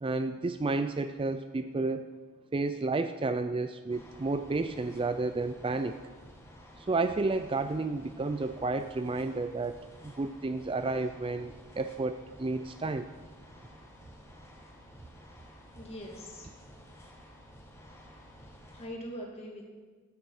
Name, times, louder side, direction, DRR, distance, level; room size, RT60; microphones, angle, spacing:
voice 1, 0.0-2.1 2.5-6.0 6.8-13.1, right 3 dB, 25° right, 10 dB, 0.4 m, -31 dB
sound 1, 3.9-18.9, equal, 10° left, 1.8 m, -53 dB
voice 2, 15.7-16.5 18.7-19.7, equal, 30° left, -1 dB, 2.6 m, -42 dB
14.0 x 13.0 x 4.9 m, 1.5 s
head